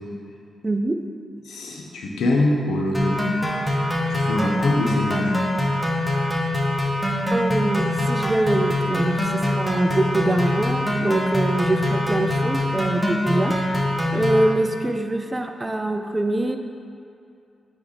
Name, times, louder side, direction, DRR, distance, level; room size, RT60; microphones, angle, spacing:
voice 1, 0.6-1.0 7.3-16.6, right 2 dB, 20° right, 6 dB, 0.5 m, -24 dB
voice 2, 1.4-3.2 4.1-5.4, left 1 dB, 85° left, 0 dB, 0.9 m, -23 dB
sound 1, 2.9-14.5, left 1 dB, 5° left, 1.0 m, -23 dB
8.7 x 3.4 x 4.1 m, 2.5 s
cardioid pair, 75°, 0 cm